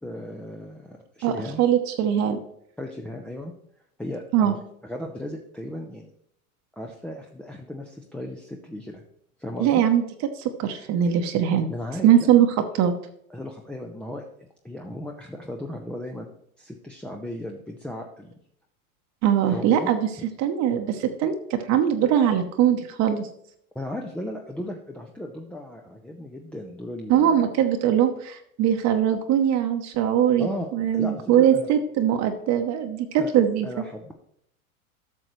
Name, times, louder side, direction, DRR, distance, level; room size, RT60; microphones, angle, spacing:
voice 1, 0.0-1.6 2.8-3.5 4.0-6.1 6.8-9.0 9.4-9.8 11.7-12.3 13.3-14.2 14.6-16.3 16.6-18.3 19.5-19.9 20.2-20.3 23.7-27.5 30.0-31.7 33.2-33.3 33.6-34.1, left 1 dB, 5° left, 1 dB, 0.4 m, -36 dB
voice 2, 1.2-2.4 4.3-4.5 9.6-10.0 10.4-11.7 12.0-12.5 12.7-12.9 19.2-20.1 20.4-23.3 27.1-33.7, right 9 dB, 40° right, 6 dB, 0.9 m, -21 dB
12.0 x 6.4 x 3.1 m, 0.72 s
hypercardioid pair, 95°, 43 cm